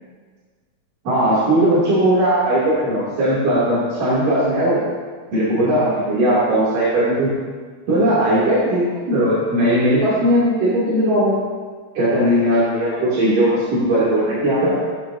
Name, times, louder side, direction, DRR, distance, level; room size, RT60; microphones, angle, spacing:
voice 1, 1.0-4.8 5.3-7.3 7.9-11.4 11.9-14.8, right 1 dB, 85° right, -9 dB, 4.7 m, -18 dB
17.0 x 16.5 x 2.8 m, 1.5 s
omnidirectional pair, 3.7 m